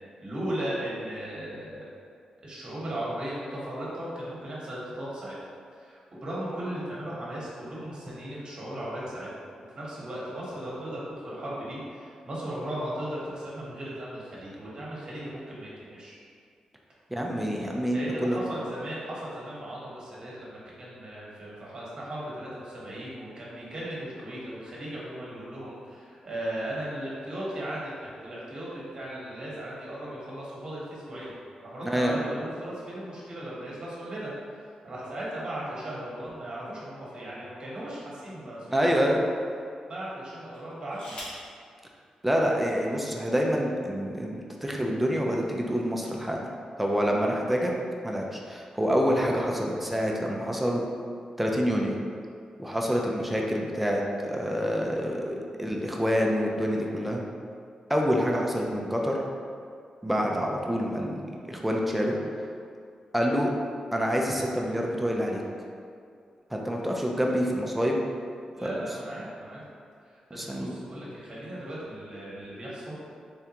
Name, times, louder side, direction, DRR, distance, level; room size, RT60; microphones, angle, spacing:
voice 1, 0.2-1.8 2.4-5.3 5.7-9.3 9.7-16.2 17.9-34.3 34.8-39.1 39.9-41.2 55.3-55.8 68.5-69.6 70.1-72.9, right 1 dB, 40° right, -6 dB, 1.1 m, -37 dB
voice 2, 17.1-18.4 31.8-32.2 38.7-39.2 42.2-46.4 46.8-47.7 48.0-50.8 51.4-52.0 52.6-57.2 57.9-59.2 60.0-62.2 63.1-63.5 63.9-65.4 66.5-68.0 68.6-68.7 70.3-70.7, equal, 5° right, -1 dB, 0.4 m, -27 dB
sound 1, 37.4-38.0 38.7-38.8 40.5-41.5 42.7-42.8 43.1-43.5, equal, 55° left, 1.2 m, -45 dB
3.5 x 3.4 x 2.9 m, 2.3 s
wide cardioid pair, 135°, 2 cm